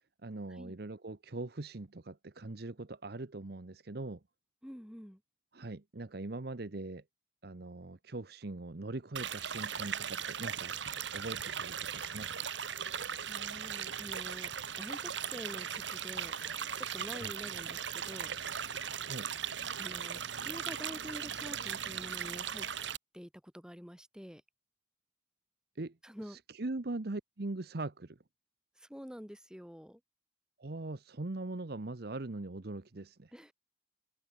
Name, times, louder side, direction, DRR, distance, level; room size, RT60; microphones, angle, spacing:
voice 1, 0.2-4.2 5.5-7.0 7.4-10.7 11.1-12.5 17.1-17.3 19.0-19.3 25.8-26.0 26.3-28.2 30.6-33.3, right 2 dB, 60° right, 0.9 m, -41 dB
voice 2, 4.6-5.2 13.3-14.5 14.8-16.3 16.8-18.3 19.8-22.7 23.1-24.4 26.0-26.4 28.8-30.0 33.3-33.5, equal, 5° right, 7.3 m, -47 dB
sound 1, 9.1-23.0, right 8 dB, 85° right, 1.9 m, -38 dB
head